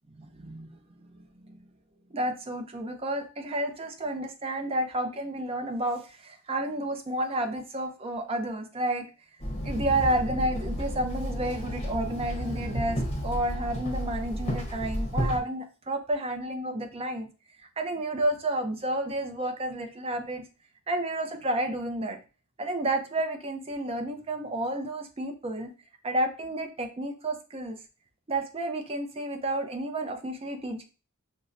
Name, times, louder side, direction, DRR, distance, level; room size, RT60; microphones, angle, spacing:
voice 1, 0.1-1.6 2.1-9.1 9.6-17.3 17.6-20.4 20.9-22.2 22.6-25.7 26.0-27.8 28.3-30.8, right 1 dB, 25° right, 5 dB, 0.5 m, -31 dB
Walk footsteps / Chatter / Hiss, 9.4-15.4, equal, 25° left, 0.8 m, -32 dB
5.2 x 2.0 x 2.5 m, 0.33 s
head